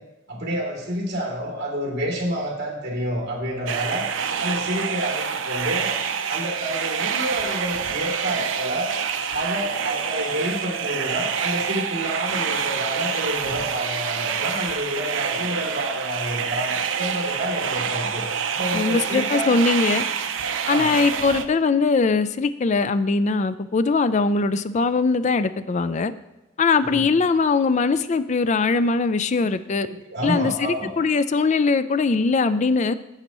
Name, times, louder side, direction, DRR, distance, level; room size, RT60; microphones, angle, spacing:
voice 1, 0.3-5.9 6.3-8.9 9.3-19.8 20.6-21.0 26.7-27.0 29.4-29.5 29.8-30.9, equal, 60° right, -2 dB, 2.6 m, -29 dB
sound 1, 3.7-21.4, right 7 dB, 80° right, 0.6 m, -27 dB
voice 2, 18.7-20.0 20.7-26.1 26.6-29.9 30.2-32.9, left 4 dB, 35° left, 13 dB, 0.4 m, -21 dB
11.5 x 7.9 x 3.0 m, 1.0 s
head